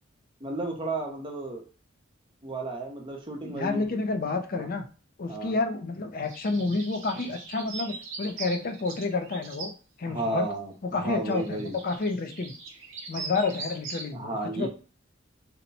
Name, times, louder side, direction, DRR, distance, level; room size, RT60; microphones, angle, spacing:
voice 1, 0.4-1.6 2.4-3.9 4.6-4.7 5.3-5.5 10.1-11.8 14.1-14.7, right 2 dB, 25° right, 0 dB, 0.8 m, -33 dB
voice 2, 3.4-4.9 5.2-10.5 10.8-12.5 13.1-14.7, left 3 dB, 50° left, 7 dB, 0.5 m, -30 dB
sound 1, 6.2-9.7 11.3-14.1, right 4 dB, 85° right, 0.8 m, -40 dB
2.8 x 2.2 x 4.0 m, 0.36 s
head